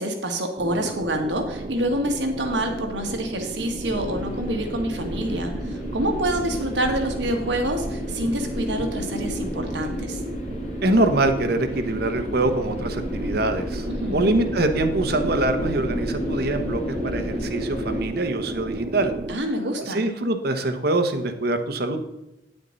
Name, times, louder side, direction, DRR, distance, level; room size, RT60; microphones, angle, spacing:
voice 1, 0.0-10.2 13.9-14.3 19.3-20.1, right 1 dB, 85° right, 4 dB, 1.8 m, -27 dB
sound 1, 0.6-19.4, right 2 dB, 30° right, 0.4 m, -34 dB
sound 2, 3.8-18.0, left 1 dB, 40° left, 2.3 m, -32 dB
voice 2, 10.8-13.9 14.1-19.1 19.8-22.0, right 2 dB, 60° right, 7 dB, 1.1 m, -24 dB
9.4 x 8.9 x 4.0 m, 0.94 s
head